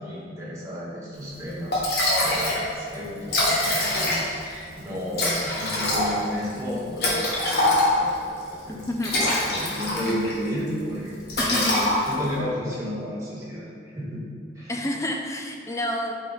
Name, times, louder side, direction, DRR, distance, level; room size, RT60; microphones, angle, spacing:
voice 1, 0.0-1.8 2.1-8.8 9.4-11.2 11.4-11.7 12.0-14.2 14.5-14.7, equal, 15° right, -8 dB, 1.7 m, -32 dB
Liquid, 1.4-1.5 1.7-2.6 2.9-3.0 3.2-4.5 5.1-8.2 8.8-10.4 10.7-10.9 11.3-12.3, left 1 dB, 60° left, 1.5 m, -24 dB
voice 2, 11.4-11.8 14.7-16.1, left 1 dB, 15° left, 2 dB, 0.5 m, -28 dB
8.8 x 3.9 x 4.0 m, 2.2 s
head